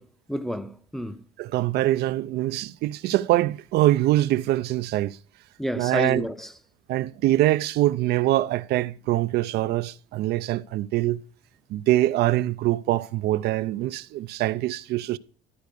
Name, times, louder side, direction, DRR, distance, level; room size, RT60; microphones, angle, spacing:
voice 1, 0.0-1.2 5.6-6.5, equal, ahead, 0.7 m, -30 dB
voice 2, 1.4-5.2 5.8-6.3 6.9-11.2 11.7-15.2, right 15 dB, 75° right, 0.5 m, -24 dB
12.5 x 4.7 x 6.6 m
cardioid pair, 110°, 17 cm